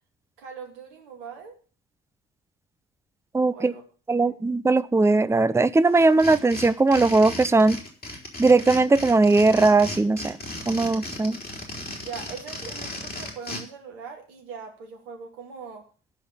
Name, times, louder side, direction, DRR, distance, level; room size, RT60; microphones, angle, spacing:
voice 1, 0.4-1.5 3.5-3.8 4.2-4.4 12.0-15.9, right 6 dB, 75° right, 2 dB, 3.0 m, -40 dB
voice 2, 3.3-3.7 4.1-7.8 8.4-10.4 10.7-11.4, right 3 dB, 10° right, 14 dB, 0.7 m, -19 dB
sound 1, 5.9-13.6, left 2 dB, 30° left, 5.0 m, -36 dB
13.5 x 5.3 x 8.6 m, 0.38 s
figure-of-eight pair, 50°, 30 cm